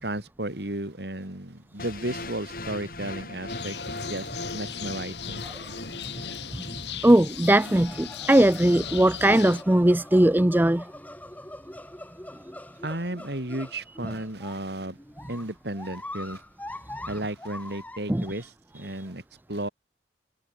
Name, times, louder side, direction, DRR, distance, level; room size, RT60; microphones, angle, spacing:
voice 1, 0.0-5.4 12.8-15.0 15.3-16.4 17.1-19.2 19.5-19.7, right 1 dB, 65° right, 3.9 m, -34 dB
sound 1, 1.8-7.8, left 2 dB, 55° left, 7.9 m, -39 dB
sound 2, 3.5-9.6, left 8 dB, 75° left, 3.7 m, -38 dB
voice 2, 6.5-10.9 18.1-18.3, right 1 dB, 10° right, 0.5 m, -20 dB
sound 3, 7.5-18.3, left 1 dB, 10° left, 4.0 m, -43 dB
head